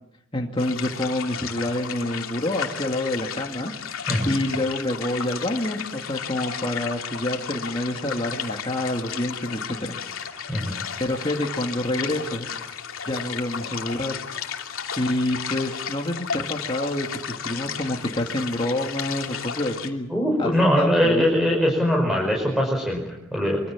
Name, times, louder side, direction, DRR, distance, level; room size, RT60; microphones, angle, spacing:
voice 1, 0.3-3.7 4.2-9.9 11.0-12.5 13.0-14.1 15.0-20.1 20.4-21.3, left 1 dB, 25° left, 1 dB, 2.3 m, -27 dB
sound 1, 0.6-19.9, left 7 dB, 80° left, 2.8 m, -33 dB
voice 2, 20.1-23.6, equal, ahead, -1 dB, 5.4 m, -22 dB
25.5 x 25.0 x 7.3 m, 0.85 s
head